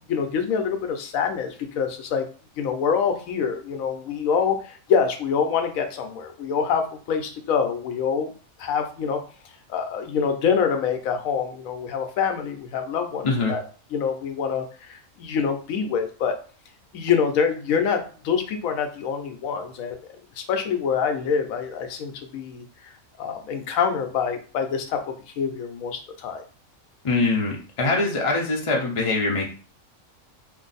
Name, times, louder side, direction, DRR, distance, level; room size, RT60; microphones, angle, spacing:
voice 1, 0.1-2.3 2.6-8.3 8.6-9.2 9.7-13.6 13.9-16.4 16.9-20.0 20.4-22.9 23.2-26.4, left 6 dB, 80° left, 6 dB, 1.0 m, -25 dB
voice 2, 27.0-29.5, left 3 dB, 40° left, -1 dB, 0.4 m, -23 dB
2.6 x 2.5 x 3.9 m, 0.39 s
omnidirectional pair, 1.4 m